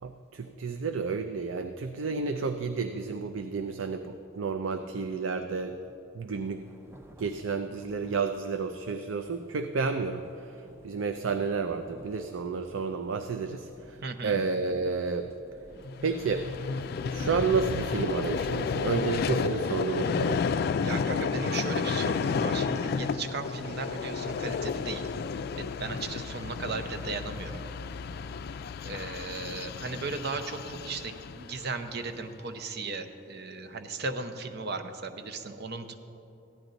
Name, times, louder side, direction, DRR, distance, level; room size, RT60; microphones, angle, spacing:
voice 1, 0.0-5.8 6.1-6.6 7.2-10.3 10.8-15.3 16.0-16.5 17.1-20.5, right 4 dB, 90° right, 8 dB, 0.4 m, -31 dB
sound 1, 6.4-22.0, equal, 15° right, 0.6 m, -49 dB
voice 2, 14.0-14.4 20.8-25.1 25.6-27.6 28.8-36.0, right 3 dB, 60° right, 8 dB, 0.7 m, -36 dB
Vehicle, 15.8-32.2, left 5 dB, 55° left, 0.3 m, -32 dB
14.5 x 10.5 x 4.0 m, 2.9 s
head